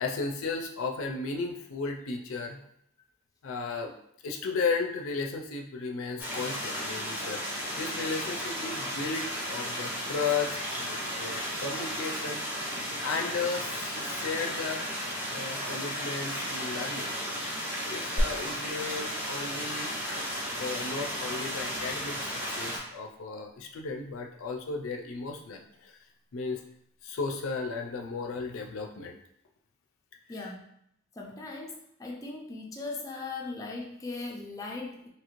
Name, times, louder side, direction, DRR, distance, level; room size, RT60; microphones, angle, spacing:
voice 1, 0.0-2.6 3.4-3.9 4.2-12.4 13.0-14.8 15.3-17.1 17.9-19.9 20.6-25.9 26.3-26.6 27.0-29.2, left 4 dB, 80° left, 2 dB, 0.4 m, -34 dB
sound 1, 6.2-22.8, equal, 10° right, 0.9 m, -34 dB
sound 2, 18.2-19.7 20.4-20.5, equal, 60° right, 0.7 m, -33 dB
voice 2, 30.3-30.6 31.2-35.1, left 3 dB, 15° left, -2 dB, 0.4 m, -39 dB
3.0 x 2.9 x 2.5 m, 0.71 s
head